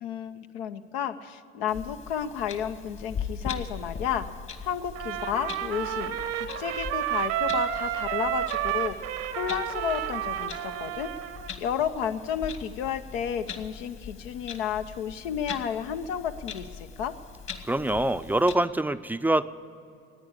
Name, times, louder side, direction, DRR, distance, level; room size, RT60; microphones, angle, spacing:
voice 1, 0.0-4.3 4.6-6.2 6.6-9.0 9.4-11.1 11.6-17.1, left 8 dB, 85° left, 9 dB, 0.8 m, -32 dB
Clock, 1.7-18.5, left 6 dB, 40° left, 1.5 m, -41 dB
Trumpet, 5.0-11.5, right 11 dB, 80° right, 1.0 m, -31 dB
voice 2, 17.7-19.4, right 1 dB, 5° right, 12 dB, 0.4 m, -24 dB
14.5 x 9.6 x 9.7 m, 2.5 s
hypercardioid pair, 75°, 29 cm